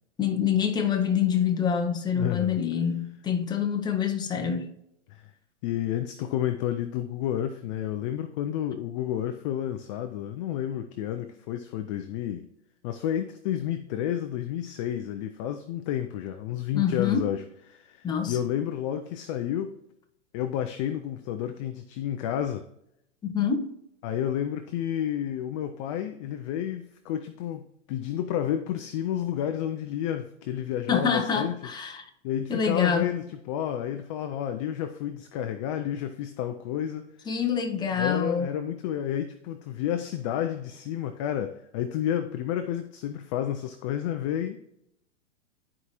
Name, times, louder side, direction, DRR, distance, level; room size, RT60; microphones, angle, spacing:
voice 1, 0.2-4.7 16.7-17.2 18.0-18.4 23.2-23.7 30.9-32.0 32.5-33.1 37.3-38.5, left 7 dB, 10° left, 0.8 m, -26 dB
voice 2, 2.1-2.6 5.1-5.2 5.6-12.5 12.8-17.4 17.7-19.7 20.3-22.6 24.0-31.6 32.2-37.1 37.9-44.6, left 10 dB, 25° left, 0.4 m, -30 dB
12.0 x 4.8 x 2.9 m
hypercardioid pair, 135°, 36 cm